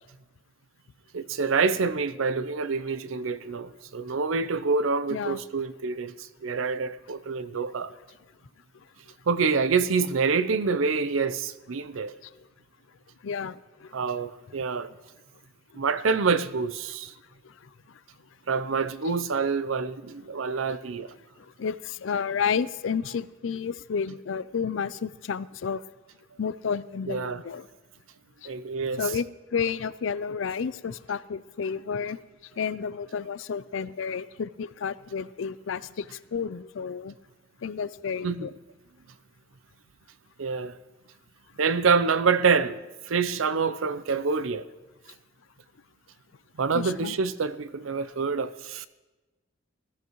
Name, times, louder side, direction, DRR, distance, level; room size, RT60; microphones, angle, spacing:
voice 1, 1.1-7.9 9.3-12.1 13.9-14.9 15.7-17.1 18.5-21.1 27.1-27.4 28.4-29.0 38.2-38.5 40.4-40.7 41.6-42.8 43.1-44.7 46.6-48.9, right 5 dB, 85° right, 0.6 m, -26 dB
voice 2, 5.1-5.4 12.2-12.3 13.2-14.0 17.4-17.7 21.4-25.8 26.4-27.7 28.4-28.5 29.0-29.2 29.5-32.2 32.6-37.1 37.6-38.5 46.7-47.1, left 6 dB, 70° left, 0.4 m, -31 dB
20.0 x 13.5 x 3.1 m
head